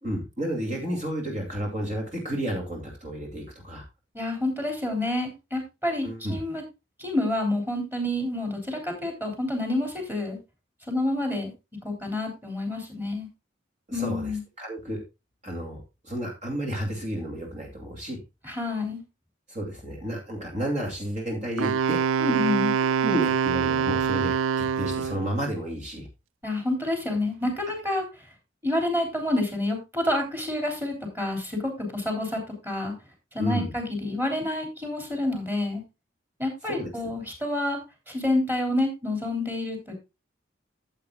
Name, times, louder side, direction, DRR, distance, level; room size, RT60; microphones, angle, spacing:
voice 1, 0.0-3.8 6.0-6.4 13.9-14.3 14.6-15.0 15.4-18.2 19.5-22.0 23.0-26.1 33.4-33.7 36.7-36.9, equal, 35° right, 0 dB, 2.5 m, -31 dB
voice 2, 4.1-6.6 7.0-10.4 10.9-11.5 11.8-13.3 13.9-14.4 18.4-19.0 22.2-22.7 26.4-28.0 28.6-32.9 33.3-35.8 36.4-37.8 38.1-39.9, left 1 dB, 10° right, 3 dB, 3.3 m, -28 dB
Wind instrument woodwind instrument, 21.6-25.3, right 7 dB, 90° right, 0.4 m, -25 dB
14.0 x 8.0 x 2.3 m, 0.25 s
head